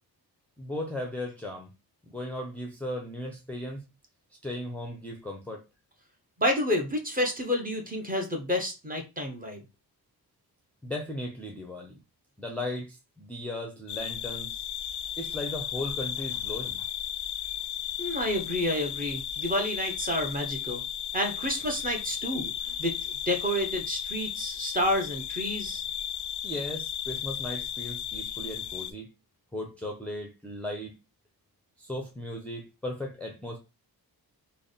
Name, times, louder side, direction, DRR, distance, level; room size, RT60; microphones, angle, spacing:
voice 1, 0.6-1.7 2.1-3.8 4.4-5.6 10.8-12.0 12.4-14.6 15.2-16.8 26.4-29.1 29.5-31.0 31.8-33.6, left 1 dB, 5° left, 0 dB, 0.6 m, -36 dB
voice 2, 6.4-9.6 18.0-20.8 21.1-22.9 23.3-25.8, left 1 dB, 20° right, 2 dB, 0.9 m, -29 dB
sound 1, 13.9-28.9, left 10 dB, 80° left, 0.5 m, -35 dB
3.4 x 2.2 x 4.0 m, 0.27 s
wide cardioid pair, 115°, 39 cm